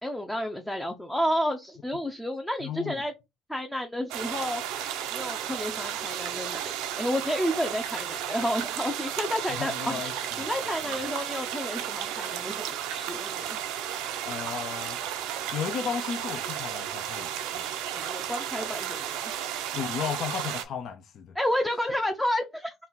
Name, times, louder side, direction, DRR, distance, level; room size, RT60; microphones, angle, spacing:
voice 1, 0.0-3.1 3.5-4.8 5.1-13.6 17.9-19.3 21.4-22.7, equal, 5° left, 0.5 m, -31 dB
voice 2, 2.6-3.0 9.5-10.1 14.2-15.0 15.5-17.6 19.7-21.3, left 8 dB, 55° left, 0.5 m, -34 dB
sound 1, 4.1-20.6, right 10 dB, 85° right, 0.6 m, -33 dB
3.9 x 2.3 x 4.0 m
cardioid pair, 115°, 0 cm